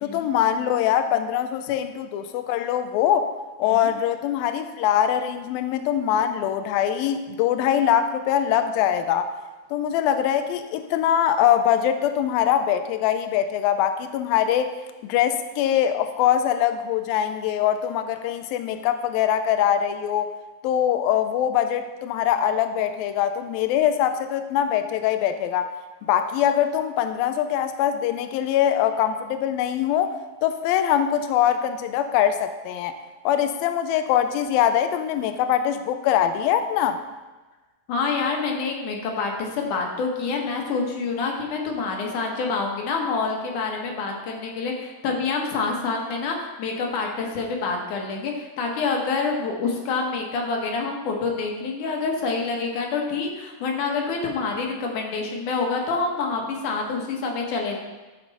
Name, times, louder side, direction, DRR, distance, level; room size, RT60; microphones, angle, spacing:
voice 1, 0.0-3.3 3.6-9.3 9.7-14.7 15.0-20.3 20.6-25.7 26.0-30.2 30.4-33.0 33.3-37.0, left 10 dB, 85° left, 9 dB, 2.4 m, -23 dB
voice 2, 37.9-57.8, left 4 dB, 65° left, 1 dB, 2.6 m, -27 dB
14.0 x 7.0 x 4.1 m, 1.2 s
omnidirectional pair, 4.1 m